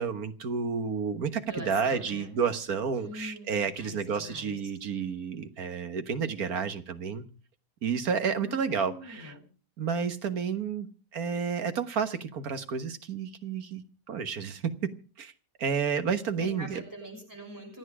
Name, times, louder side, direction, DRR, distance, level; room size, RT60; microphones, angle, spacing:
voice 1, 0.0-7.3 7.8-9.3 9.8-13.8 14.1-14.9 15.2-15.3 15.6-16.8, right 6 dB, 70° right, 9 dB, 1.8 m, -31 dB
voice 2, 1.5-2.3 2.9-4.6 8.3-9.4 16.4-17.8, left 1 dB, 10° right, 2 dB, 6.6 m, -43 dB
27.5 x 9.4 x 4.9 m, 0.38 s
omnidirectional pair, 1.6 m